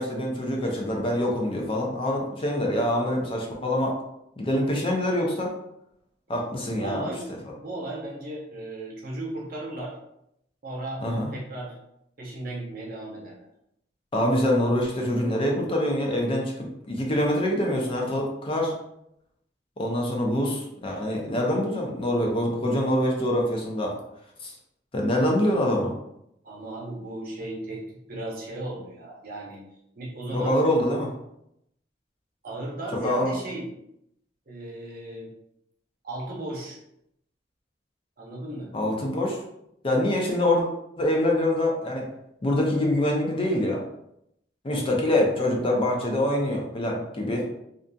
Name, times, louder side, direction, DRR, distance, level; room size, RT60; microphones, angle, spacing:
voice 1, 0.0-3.9 4.4-5.5 6.3-7.1 11.0-11.3 14.1-18.7 19.8-23.9 24.4-24.5 24.9-25.9 30.3-31.1 33.0-33.3 38.7-39.4 39.8-40.7 41.0-42.1 42.4-43.8 44.6-47.5, left 1 dB, 30° left, 0 dB, 0.5 m, -25 dB
voice 2, 6.8-7.3 7.6-10.0 10.6-11.0 11.3-11.8 12.2-13.5 25.4-25.6 26.4-29.6 30.0-30.6 32.4-33.7 34.5-35.3 36.0-36.8 38.2-38.7 44.7-44.9, right 2 dB, 50° right, -2 dB, 0.7 m, -35 dB
2.6 x 2.5 x 2.2 m, 0.79 s
head